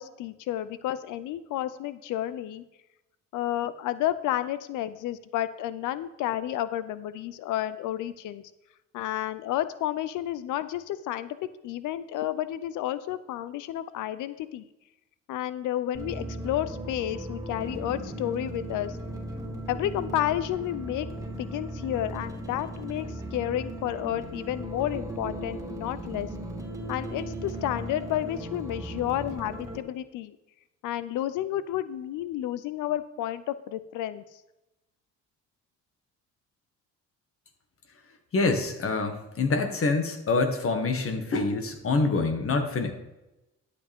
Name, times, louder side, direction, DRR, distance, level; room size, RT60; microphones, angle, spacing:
voice 1, 0.0-2.6 3.3-8.4 8.9-14.6 15.3-19.0 19.7-21.1 21.4-26.3 26.9-30.4 30.8-34.2, left 12 dB, 90° left, 14 dB, 0.6 m, -31 dB
sound 1, 15.9-29.8, right 1 dB, 10° right, 2.4 m, -37 dB
voice 2, 38.3-42.9, left 3 dB, 45° left, 6 dB, 1.8 m, -26 dB
12.0 x 8.4 x 3.6 m, 0.96 s
cardioid pair, 90°, 30 cm